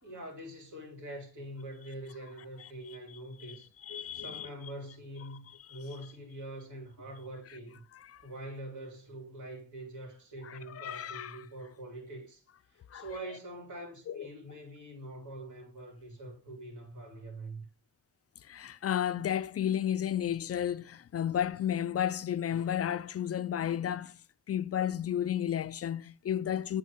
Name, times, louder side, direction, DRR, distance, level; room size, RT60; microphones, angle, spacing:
voice 1, 0.0-7.8 8.2-12.4 12.7-17.7, right 1 dB, 75° right, 3.5 m, -44 dB
voice 2, 3.9-4.5 5.7-5.8 8.1-8.2 10.4-11.4 12.9-13.1 14.1-14.3 18.4-24.2 24.5-26.8, left 10 dB, 50° left, 0.4 m, -32 dB
8.3 x 3.9 x 4.4 m
cardioid pair, 85°, 31 cm